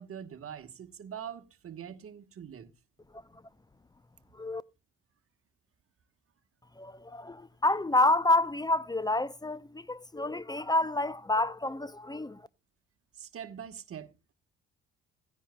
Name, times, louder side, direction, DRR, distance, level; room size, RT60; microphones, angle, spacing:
voice 1, 0.0-2.7 13.1-14.1, right 8 dB, 45° right, 1.2 m, -43 dB
voice 2, 6.8-12.4, left 2 dB, 15° left, 0.5 m, -28 dB
16.5 x 10.0 x 2.2 m
hypercardioid pair, 55°, 30 cm